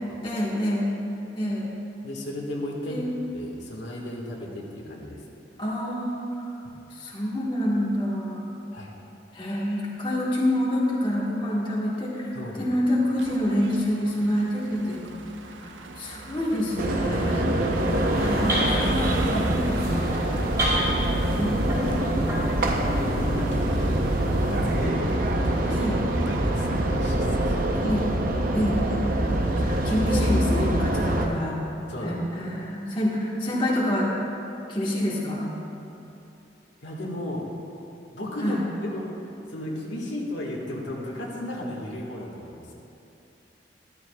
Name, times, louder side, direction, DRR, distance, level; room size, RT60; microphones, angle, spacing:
voice 1, 0.2-0.9 1.3-1.7 2.9-3.1 5.6-6.5 6.9-8.5 9.3-15.2 15.5-15.7 16.0-17.5 18.1-20.1 21.0-22.2 25.7-26.1 27.8-28.1 28.5-29.3 29.6-31.6 32.0-34.1 34.7-35.5 38.4-38.6, left 1 dB, 25° left, -6 dB, 1.5 m, -27 dB
voice 2, 2.0-3.0 3.3-5.2 8.7-9.0 12.3-12.8 21.2-21.3 22.1-25.1 25.4-25.9 26.3-27.7 28.6-28.8 29.2-30.0 31.9-32.5 36.8-37.5 38.1-42.7, left 1 dB, 80° left, -3 dB, 1.7 m, -35 dB
sound 1, 13.2-27.8, right 3 dB, 90° right, 0.6 m, -41 dB
sound 2, 16.8-31.3, right 1 dB, 50° right, 0.7 m, -25 dB
sound 3, 17.9-24.9, equal, 20° right, 2.2 m, -29 dB
13.5 x 13.0 x 2.3 m, 2.8 s
head